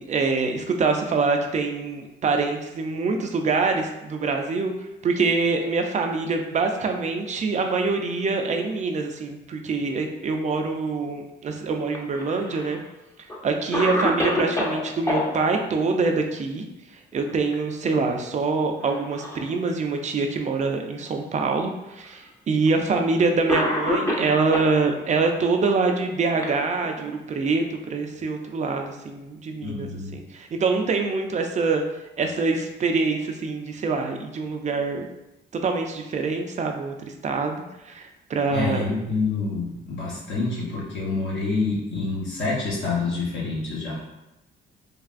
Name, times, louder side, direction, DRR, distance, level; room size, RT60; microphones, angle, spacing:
voice 1, 0.0-4.7 5.0-12.8 13.4-16.6 16.9-31.8 32.2-35.1 35.5-38.9, right 4 dB, 35° right, 4 dB, 0.4 m, -25 dB
Cough, 11.9-12.8 13.3-13.4 13.7-15.2 17.1-17.5 17.9-18.0 18.8-19.5 20.3-20.4 21.4-21.5 22.7-22.8 23.5-24.7 25.7-27.1, left 1 dB, 15° left, 0.6 m, -27 dB
voice 2, 29.6-30.2 38.5-44.0, left 3 dB, 65° left, -6 dB, 0.9 m, -27 dB
3.3 x 2.4 x 2.4 m, 0.95 s
cardioid pair, 90°, 20 cm